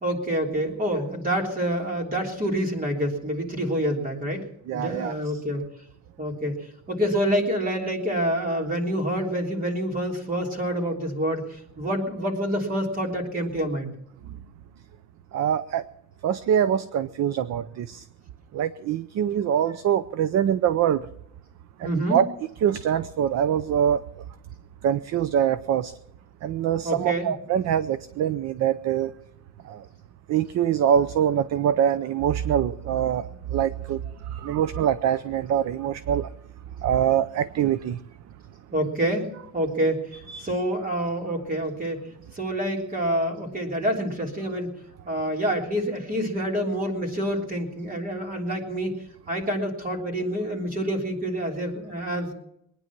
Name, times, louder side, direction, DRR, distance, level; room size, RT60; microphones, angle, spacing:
voice 1, 0.0-4.4 4.7-5.7 6.2-6.6 6.9-13.9 21.8-22.2 26.8-27.3 38.7-39.3 39.5-42.1 42.3-44.7 45.0-48.9 49.3-52.3, equal, 25° right, 1 dB, 3.4 m, -27 dB
voice 2, 4.7-5.1 14.3-14.4 15.3-15.8 16.2-18.1 18.5-21.1 21.8-22.3 22.6-24.0 24.8-25.9 26.4-29.1 29.6-29.9 30.3-36.3 36.8-38.0 40.3-40.5, right 9 dB, 50° right, 14 dB, 0.6 m, -24 dB
22.5 x 9.9 x 6.0 m, 0.77 s
cardioid pair, 170°, 35 cm